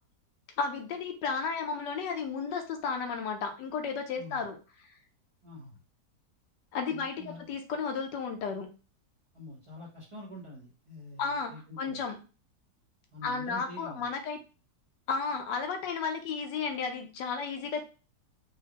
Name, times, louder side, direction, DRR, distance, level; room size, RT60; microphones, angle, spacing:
voice 1, 0.6-4.6 6.7-8.7 11.2-12.2 13.2-14.4 15.1-17.8, left 5 dB, 80° left, 5 dB, 1.4 m, -33 dB
voice 2, 5.4-5.8 6.9-7.5 9.3-12.0 13.1-14.1, left 1 dB, 20° right, -4 dB, 0.9 m, -46 dB
4.6 x 2.1 x 3.0 m, 0.33 s
omnidirectional pair, 1.9 m